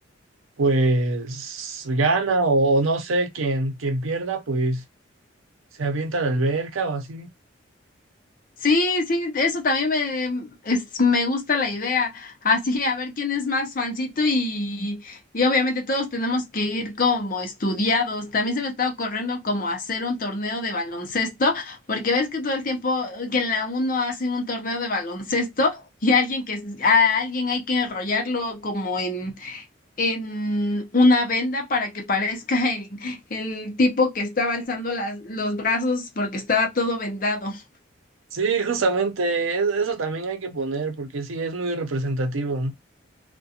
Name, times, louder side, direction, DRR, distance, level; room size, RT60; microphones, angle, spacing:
voice 1, 0.6-4.8 5.8-7.3 38.3-42.7, right 3 dB, 90° right, 0.6 m, -24 dB
voice 2, 8.6-29.6 30.0-37.6, left 3 dB, 45° left, 0.6 m, -24 dB
2.4 x 2.1 x 2.7 m
head